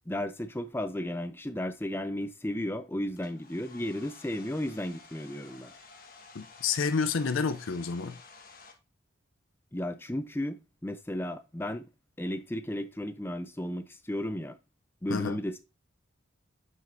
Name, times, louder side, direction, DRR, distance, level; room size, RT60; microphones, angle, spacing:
voice 1, 0.1-5.7 9.7-11.9 12.2-14.6 15.0-15.6, left 1 dB, 10° left, 0.5 m, -34 dB
Domestic sounds home sounds, 3.1-8.7, left 4 dB, 45° left, 1.4 m, -52 dB
voice 2, 6.3-8.2 15.1-15.4, left 5 dB, 85° left, 0.5 m, -29 dB
7.6 x 6.4 x 2.6 m
head